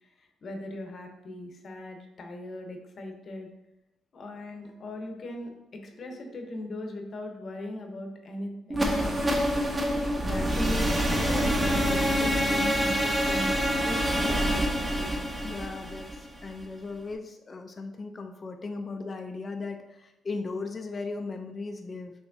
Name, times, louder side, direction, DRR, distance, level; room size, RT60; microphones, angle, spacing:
voice 1, 0.0-3.5 4.1-9.7 10.2-13.5 13.8-15.3, left 1 dB, 50° left, 3 dB, 0.8 m, -38 dB
sound 1, 8.7-16.6, equal, 25° right, 0.7 m, -26 dB
voice 2, 15.4-22.1, left 3 dB, 35° left, 5 dB, 0.4 m, -37 dB
5.8 x 3.0 x 2.6 m, 0.93 s
cardioid pair, 90°, 0 cm